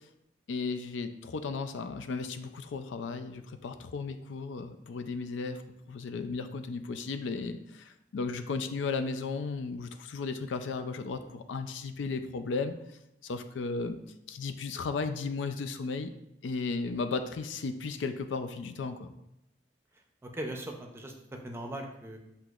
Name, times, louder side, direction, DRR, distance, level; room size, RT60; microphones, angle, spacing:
voice 1, 0.5-5.6 5.9-12.7 13.2-14.0 14.3-16.1 16.4-19.1, left 4 dB, 85° left, 8 dB, 0.4 m, -35 dB
voice 2, 19.9-22.2, right 1 dB, 15° right, 2 dB, 0.5 m, -40 dB
7.7 x 2.8 x 2.4 m, 0.84 s
head